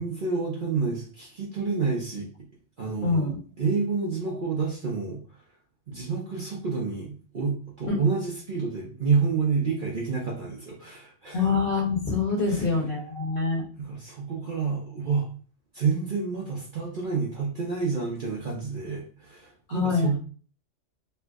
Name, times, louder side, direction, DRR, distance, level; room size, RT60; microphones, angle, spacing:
voice 1, 0.0-2.3 2.8-5.2 5.9-11.4 12.5-12.7 13.8-15.3 15.7-20.1, right 5 dB, 50° right, -4 dB, 0.8 m, -29 dB
voice 2, 3.0-3.3 7.9-8.0 11.3-13.6 19.7-20.2, left 4 dB, 45° left, -1 dB, 1.1 m, -25 dB
3.3 x 2.0 x 3.4 m, 0.40 s
omnidirectional pair, 1.3 m